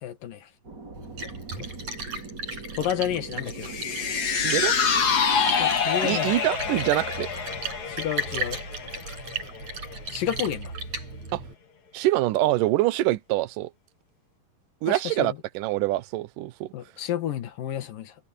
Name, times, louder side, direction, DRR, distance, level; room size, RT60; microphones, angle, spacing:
voice 1, 0.0-0.5 2.8-3.7 5.6-6.3 7.9-8.6 10.1-10.7 14.9-15.3 16.7-18.2, left 10 dB, 75° left, 3.2 m, -30 dB
sound 1, 0.6-5.8, right 2 dB, 30° right, 4.3 m, -41 dB
Splash splatter, 0.9-11.5, right 2 dB, 50° right, 9.2 m, -36 dB
sound 2, 3.6-10.0 10.4-10.5, left 6 dB, 50° left, 1.2 m, -27 dB
voice 2, 4.4-4.8 6.0-7.3 11.3-11.4 11.9-13.7 14.8-16.7, right 16 dB, 75° right, 2.4 m, -25 dB
omnidirectional pair, 4.0 m